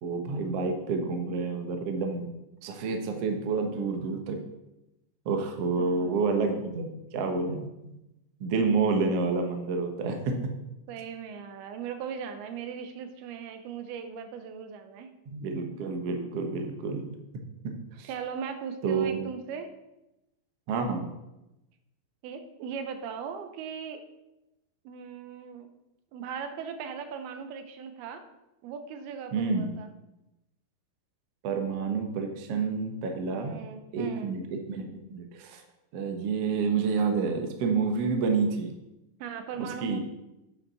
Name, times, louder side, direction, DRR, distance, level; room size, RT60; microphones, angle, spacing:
voice 1, 0.0-2.3 2.6-4.4 5.2-8.0 8.4-10.5 15.3-17.0 17.6-17.7 18.0-18.1 18.8-19.3 20.7-21.1 29.3-29.7 31.4-33.6 33.9-34.4 34.7-35.6 35.9-38.7 39.6-40.0, right 4 dB, 70° right, 4 dB, 1.5 m, -29 dB
voice 2, 5.8-6.3 10.9-15.1 18.1-19.7 22.2-24.0 24.8-25.7 26.1-28.2 28.6-29.9 33.4-34.3 39.2-40.0, right 6 dB, 90° right, 8 dB, 2.8 m, -38 dB
9.2 x 8.2 x 4.1 m, 0.93 s
omnidirectional pair, 4.4 m